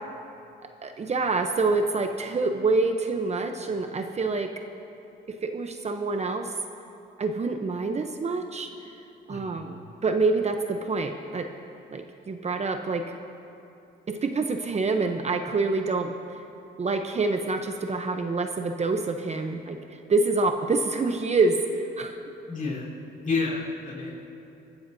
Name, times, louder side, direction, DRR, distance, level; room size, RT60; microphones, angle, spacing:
voice 1, 0.8-4.5 5.3-6.5 7.2-8.7 9.3-11.5 11.9-13.1 14.1-16.1 16.8-19.8 20.1-22.2, right 3 dB, 35° right, 6 dB, 0.7 m, -26 dB
voice 2, 9.3-9.6 22.5-22.9 23.2-24.1, left 4 dB, 40° left, -4 dB, 3.8 m, -30 dB
24.0 x 13.0 x 2.7 m, 2.8 s
cardioid pair, 90°, 20 cm